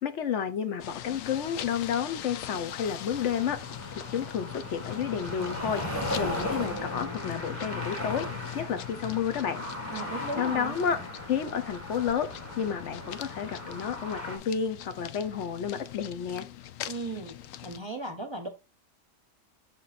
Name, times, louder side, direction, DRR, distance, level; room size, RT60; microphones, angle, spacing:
voice 1, 0.0-3.6 4.1-5.8 6.2-8.3 8.5-9.6 10.4-11.0 11.3-12.3 12.6-16.5, left 8 dB, 65° left, 1.1 m, -31 dB
sound 1, 0.8-17.8, left 12 dB, 80° left, 1.0 m, -42 dB
sound 2, 3.1-14.4, left 1 dB, 15° left, 1.5 m, -37 dB
voice 2, 9.9-10.7 16.9-17.4 17.6-18.5, right 2 dB, 30° right, 0.6 m, -36 dB
6.7 x 4.0 x 4.1 m
omnidirectional pair, 1.4 m